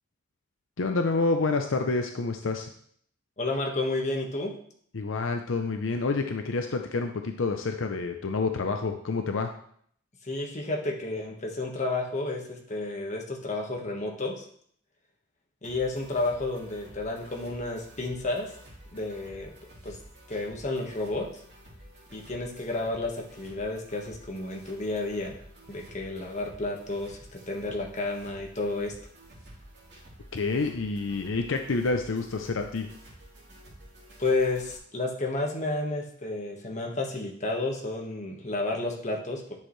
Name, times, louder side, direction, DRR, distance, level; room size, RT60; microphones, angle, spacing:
voice 1, 0.8-2.7 4.9-9.5 30.3-32.9, left 3 dB, 70° left, 5 dB, 0.6 m, -28 dB
voice 2, 3.4-4.5 10.2-14.4 15.6-18.5 18.9-19.5 19.8-20.0 20.3-21.2 22.1-25.4 25.7-28.9 34.2-39.4, left 2 dB, 35° left, 0 dB, 1.4 m, -31 dB
sound 1, 15.6-34.8, right 1 dB, 55° right, 3.3 m, -51 dB
10.5 x 6.5 x 3.2 m, 0.63 s
head